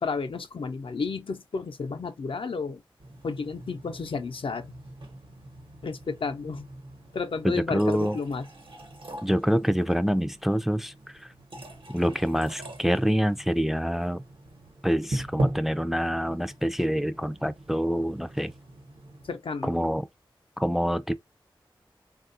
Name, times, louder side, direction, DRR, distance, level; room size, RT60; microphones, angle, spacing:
voice 1, 0.0-2.8 3.2-4.7 5.8-6.7 7.1-8.5 19.3-19.7, left 4 dB, 85° left, 0.5 m, -32 dB
sound 1, 3.0-19.3, right 1 dB, 90° right, 1.0 m, -39 dB
voice 2, 7.4-8.2 9.2-10.9 11.2-11.3 11.9-14.2 14.8-18.5 19.6-20.1 20.6-21.1, equal, 5° right, 0.3 m, -26 dB
3.5 x 2.4 x 2.5 m
wide cardioid pair, 60°, 9 cm